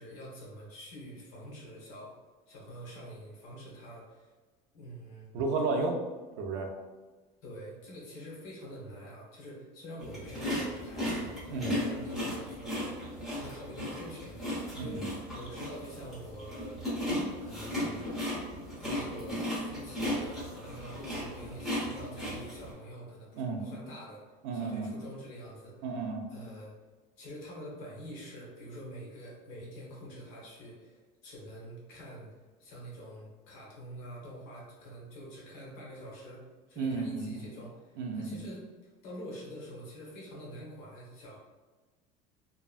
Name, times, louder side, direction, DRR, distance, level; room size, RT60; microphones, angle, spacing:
voice 1, 0.0-2.2 2.5-4.3 4.7-5.3 7.4-13.1 13.3-16.8 17.0-18.1 18.8-24.2 24.5-26.0 26.3-26.8 27.2-32.3 32.6-36.4 36.7-41.4, equal, 60° left, -4 dB, 0.9 m, -46 dB
voice 2, 5.3-6.0 6.4-6.7 11.5-11.7 14.7-15.1 23.3-23.6 24.4-24.9 25.8-26.2 36.8-37.4 38.0-38.4, right 4 dB, 75° right, 3 dB, 0.5 m, -32 dB
sound 1, 10.0-22.7, left 1 dB, ahead, 0.9 m, -36 dB
2.7 x 2.2 x 2.3 m, 1.3 s
cardioid pair, 170°, 17 cm